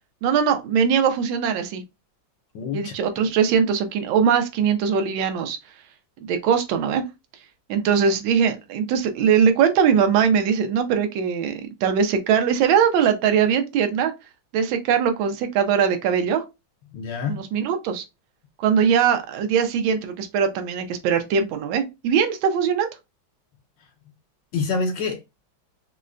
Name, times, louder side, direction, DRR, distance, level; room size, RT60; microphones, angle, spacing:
voice 1, 0.2-1.8 2.7-5.6 6.2-7.0 7.7-14.1 14.5-16.4 17.3-18.0 18.6-22.9, right 7 dB, 85° right, 1.4 m, -21 dB
voice 2, 2.5-2.9 16.9-17.4 24.5-25.2, left 4 dB, 75° left, 1.3 m, -26 dB
4.6 x 2.1 x 2.5 m
omnidirectional pair, 2.1 m